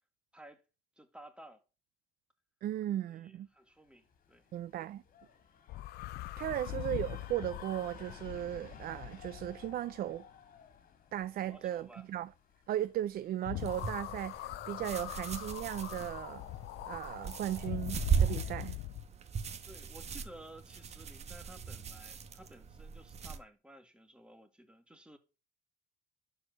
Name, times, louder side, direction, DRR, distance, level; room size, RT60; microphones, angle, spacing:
voice 1, 1.0-1.6 3.1-4.5 6.4-6.6 11.4-12.1 19.7-25.2, right 1 dB, 5° right, 2.0 m, -55 dB
voice 2, 2.6-3.5 4.5-5.0 6.4-10.3 11.1-12.3 12.7-16.5 16.9-18.8, right 12 dB, 60° right, 0.6 m, -37 dB
sound 1, 3.9-13.7, left 6 dB, 55° left, 2.4 m, -56 dB
sound 2, 5.7-9.9 13.4-19.1, left 17 dB, 75° left, 0.5 m, -42 dB
sound 3, 13.6-23.4, right 7 dB, 40° right, 1.3 m, -38 dB
11.5 x 4.8 x 6.7 m
cardioid pair, 110°, 17 cm